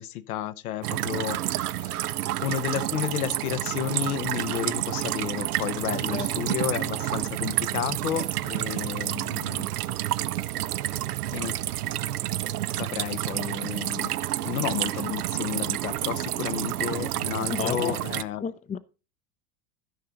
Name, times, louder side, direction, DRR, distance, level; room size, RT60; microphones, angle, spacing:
voice 1, 0.0-2.1 2.4-9.7 11.3-11.6 12.7-14.1 14.4-18.4, left 12 dB, 70° left, 1.0 m, -32 dB
sound 1, 0.8-18.2, right 14 dB, 80° right, 0.6 m, -29 dB
voice 2, 6.1-6.4 17.5-18.1 18.4-18.8, left 7 dB, 15° left, 0.6 m, -32 dB
13.0 x 5.6 x 4.0 m
hypercardioid pair, 85°, 45 cm